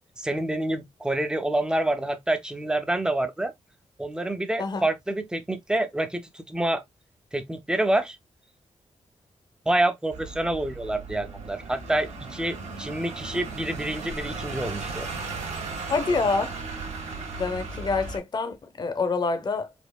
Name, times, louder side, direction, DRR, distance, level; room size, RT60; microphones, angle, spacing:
voice 1, 0.2-3.5 4.0-6.8 7.3-8.2 9.7-15.1, right 1 dB, 5° right, 0.4 m, -27 dB
sound 1, 10.1-18.2, right 3 dB, 70° right, 1.3 m, -36 dB
voice 2, 15.9-16.5 17.4-19.7, left 4 dB, 35° left, 0.6 m, -26 dB
4.2 x 2.7 x 2.2 m
wide cardioid pair, 180°, 12 cm